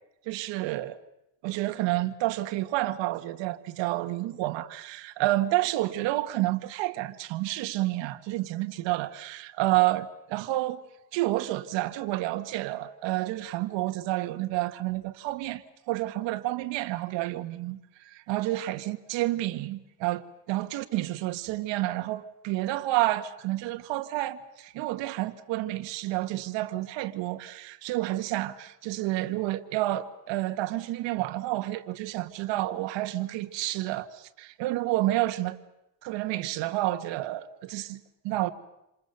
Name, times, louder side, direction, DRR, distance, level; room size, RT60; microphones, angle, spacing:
voice 1, 0.3-1.0 1.4-10.8 11.1-35.6 36.0-38.5, right 16 dB, 80° right, 1.8 m, -30 dB
28.0 x 27.0 x 6.8 m
cardioid pair, 135°, 43 cm